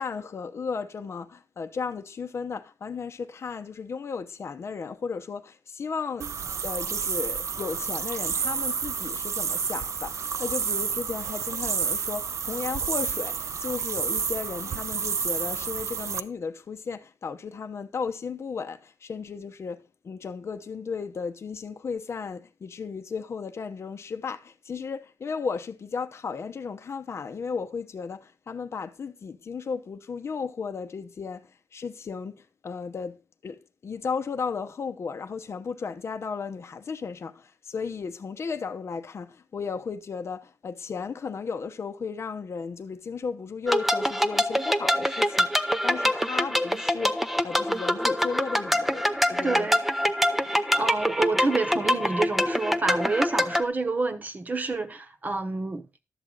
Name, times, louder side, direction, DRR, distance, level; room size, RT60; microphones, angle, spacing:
voice 1, 0.0-6.3 6.6-49.7 50.4-50.6, left 5 dB, 50° left, 0.8 m, -35 dB
sound 1, 6.2-16.2, right 6 dB, 55° right, 0.6 m, -30 dB
sound 2, 43.7-53.6, equal, ahead, 0.7 m, -25 dB
voice 2, 49.4-49.8 50.7-55.8, right 3 dB, 30° right, 1.1 m, -28 dB
12.0 x 7.4 x 3.9 m
cardioid pair, 110°, 6 cm